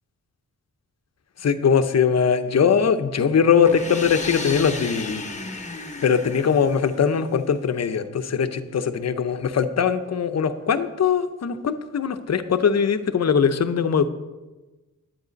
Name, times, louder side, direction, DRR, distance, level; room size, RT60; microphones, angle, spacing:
voice 1, 1.4-5.2 6.0-14.1, left 6 dB, 55° left, 10 dB, 0.8 m, -21 dB
sound 1, 3.6-7.4, left 3 dB, 20° left, 1.0 m, -34 dB
11.0 x 9.0 x 5.2 m, 1.1 s
wide cardioid pair, 135°, 32 cm